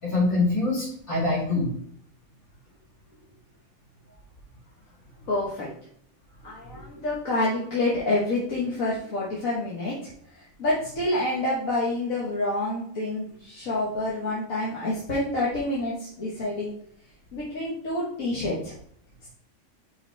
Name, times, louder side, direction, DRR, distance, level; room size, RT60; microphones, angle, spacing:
voice 1, 0.0-1.7, left 2 dB, 55° left, -11 dB, 2.9 m, -24 dB
voice 2, 5.3-5.7 6.4-16.7 17.3-18.7 19.2-19.3, left 2 dB, 75° left, -6 dB, 1.8 m, -28 dB
5.5 x 4.1 x 4.5 m, 0.66 s
omnidirectional pair, 1.5 m